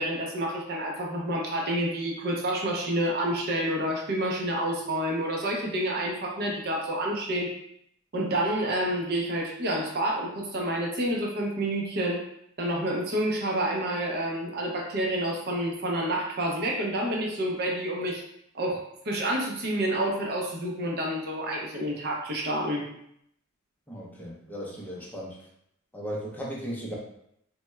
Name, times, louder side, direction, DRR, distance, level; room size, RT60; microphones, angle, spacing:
voice 1, 0.0-7.5 8.1-12.2 12.6-18.2 18.5-22.9, right 1 dB, 50° right, -1 dB, 0.6 m, -29 dB
voice 2, 23.9-25.4 25.9-27.0, equal, 10° left, -4 dB, 0.5 m, -36 dB
3.3 x 2.2 x 3.1 m, 0.73 s
head